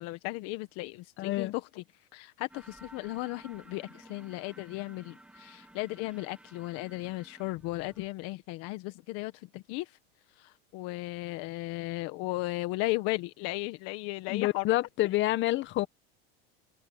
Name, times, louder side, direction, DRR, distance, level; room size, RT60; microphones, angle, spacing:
voice 1, 0.0-1.8 2.1-10.0 10.4-14.8, left 20 dB, 55° left, 1.4 m, -36 dB
voice 2, 1.2-1.5 14.3-15.9, left 16 dB, 40° left, 1.0 m, -28 dB
sound 1, 2.5-8.1, right 1 dB, 5° right, 2.2 m, -54 dB
supercardioid pair, 135°, 29 cm